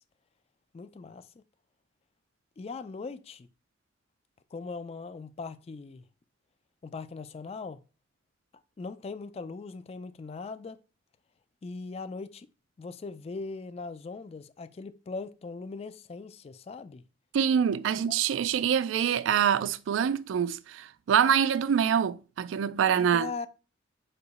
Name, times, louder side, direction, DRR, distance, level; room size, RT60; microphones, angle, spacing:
voice 1, 0.7-1.3 2.6-3.5 4.5-6.0 6.8-7.8 8.8-10.8 11.6-12.5 12.8-17.0 18.1-18.2 22.9-23.5, left 4 dB, 30° left, 0.3 m, -40 dB
voice 2, 17.3-23.3, right 8 dB, 85° right, 0.3 m, -25 dB
4.5 x 2.9 x 4.0 m
head